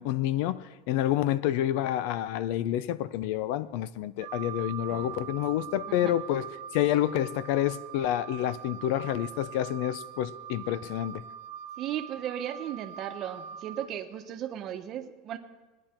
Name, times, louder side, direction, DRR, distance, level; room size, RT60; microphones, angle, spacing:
voice 1, 0.0-6.5 6.7-11.2, left 12 dB, 65° left, 0.5 m, -28 dB
Wind instrument woodwind instrument, 4.2-13.9, right 10 dB, 90° right, 1.0 m, -43 dB
sound 1, 4.9-7.8, right 1 dB, 20° left, 1.7 m, -54 dB
voice 2, 11.8-15.4, right 10 dB, 40° right, 1.0 m, -36 dB
19.5 x 10.5 x 4.4 m
supercardioid pair, 150°, 0 cm